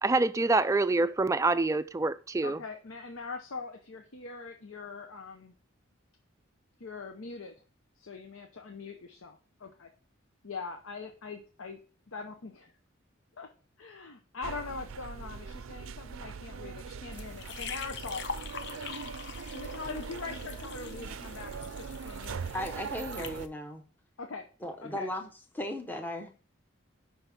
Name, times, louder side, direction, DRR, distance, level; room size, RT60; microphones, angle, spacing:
voice 1, 0.0-2.6, right 3 dB, 15° right, 0.3 m, -26 dB
voice 2, 2.4-5.5 6.8-7.5 8.0-9.9 10.4-11.8 12.1-12.7 13.4-13.5 13.8-18.2 18.7-18.8 19.5-22.6 24.2-24.4 24.8-25.1, left 4 dB, 85° left, 0.8 m, -42 dB
sound 1, 14.4-23.5, right 5 dB, 90° right, 0.5 m, -41 dB
sound 2, 17.1-23.5, left 5 dB, 55° left, 0.8 m, -43 dB
voice 3, 22.5-23.8 24.6-25.3 25.5-26.3, left 1 dB, 10° left, 0.7 m, -36 dB
5.7 x 5.6 x 5.9 m
head